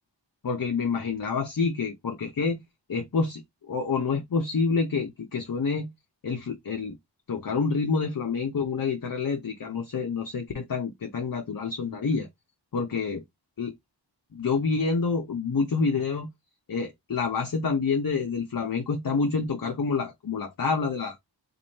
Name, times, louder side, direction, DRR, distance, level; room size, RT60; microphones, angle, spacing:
voice 1, 0.4-2.6 2.9-3.4 3.7-5.9 6.2-7.0 7.3-12.3 12.7-13.2 13.6-13.7 14.3-16.3 16.7-21.2, left 4 dB, 50° left, 0.8 m, -27 dB
3.1 x 2.6 x 4.0 m
wide cardioid pair, 50°, 44 cm